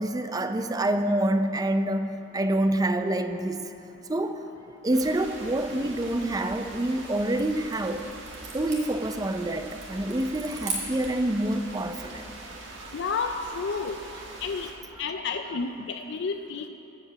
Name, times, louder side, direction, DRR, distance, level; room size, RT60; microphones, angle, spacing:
voice 1, 0.0-3.7 4.1-4.4 4.8-8.0 8.5-12.2 12.8-12.9, right 1 dB, 20° right, 8 dB, 0.5 m, -27 dB
sound 1, 4.9-14.7, right 2 dB, 85° right, 1.7 m, -43 dB
sound 2, 7.0-11.3, right 4 dB, 35° right, 2.4 m, -40 dB
voice 2, 12.9-14.0 14.4-14.7 15.0-16.7, left 5 dB, 65° left, 7 dB, 0.4 m, -30 dB
15.5 x 5.6 x 6.9 m, 2.9 s
head